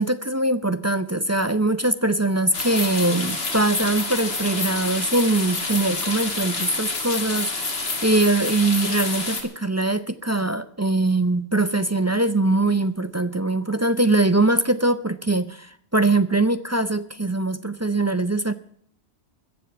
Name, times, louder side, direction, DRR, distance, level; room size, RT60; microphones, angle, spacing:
voice 1, 0.0-18.5, right 2 dB, 20° right, 12 dB, 0.4 m, -22 dB
sound 1, 2.5-9.4, left 3 dB, 65° left, 2.2 m, -28 dB
15.0 x 7.1 x 9.4 m, 0.65 s
omnidirectional pair, 1.1 m